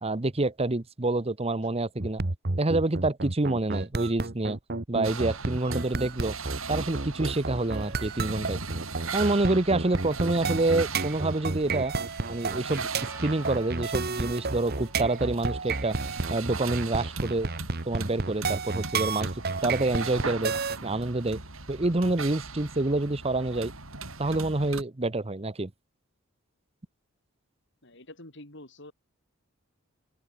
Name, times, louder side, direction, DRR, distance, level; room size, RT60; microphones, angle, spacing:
voice 1, 0.0-2.2 2.6-4.6 4.9-6.4 6.7-8.6 9.1-11.9 12.3-12.9 13.2-16.0 16.3-17.5 17.8-20.5 20.8-21.4 21.7-23.7 24.2-25.7, right 2 dB, 30° right, 1.0 m, -27 dB
sound 1, 2.0-20.8, right 3 dB, 50° right, 1.4 m, -31 dB
sound 2, 5.0-24.8, right 4 dB, 85° right, 6.9 m, -39 dB
Percussion, 13.1-17.6, right 2 dB, 15° right, 4.9 m, -53 dB
voice 2, 27.8-28.9, left 1 dB, 60° left, 5.7 m, -47 dB
open air
head